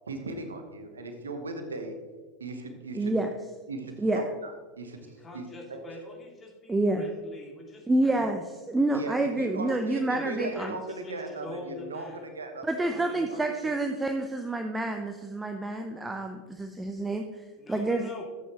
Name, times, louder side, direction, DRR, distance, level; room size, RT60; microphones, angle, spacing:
voice 1, 0.1-2.0 2.4-3.2 3.7-4.5 4.8-5.1 5.3-5.4 5.7-5.8 8.9-12.9 13.3-13.4, right 3 dB, 80° right, 6 dB, 1.1 m, -37 dB
voice 2, 2.9-3.3 4.0-4.2 6.7-7.0 7.9-10.7 12.6-17.4 17.7-18.1, right 2 dB, 10° right, 5 dB, 0.7 m, -28 dB
voice 3, 5.0-8.3 10.1-10.3 10.5-10.7 11.0-12.3 12.8-13.7 17.6-18.2, left 2 dB, 25° left, -2 dB, 2.9 m, -44 dB
12.0 x 8.3 x 3.0 m, 1.4 s
figure-of-eight pair, 80°, 0 cm